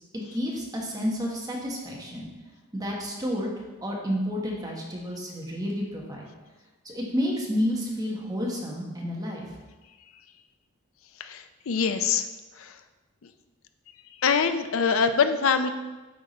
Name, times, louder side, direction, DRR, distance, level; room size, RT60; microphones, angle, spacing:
voice 1, 0.1-2.3 2.7-3.5 3.8-6.3 6.8-9.4, equal, 20° right, -2 dB, 1.2 m, -30 dB
voice 2, 11.2-12.3 12.6-12.8 14.2-15.7, left 6 dB, 75° left, 9 dB, 0.5 m, -24 dB
8.8 x 3.7 x 4.1 m, 1.2 s
head